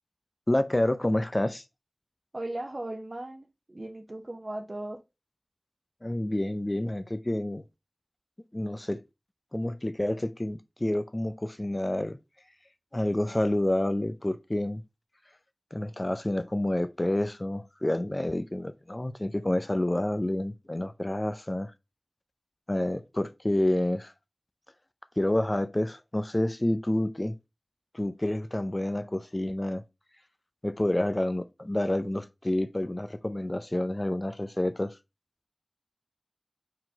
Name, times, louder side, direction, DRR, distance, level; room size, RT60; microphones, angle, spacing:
voice 1, 0.5-1.6 6.0-7.6 8.5-9.0 9.5-12.2 12.9-14.8 15.7-21.7 22.7-24.1 25.2-27.4 27.9-29.8 30.6-35.0, left 1 dB, 35° left, 0.4 m, -28 dB
voice 2, 2.3-5.0, right 1 dB, 50° right, 0.7 m, -37 dB
4.6 x 3.9 x 2.8 m
wide cardioid pair, 50°, 0 cm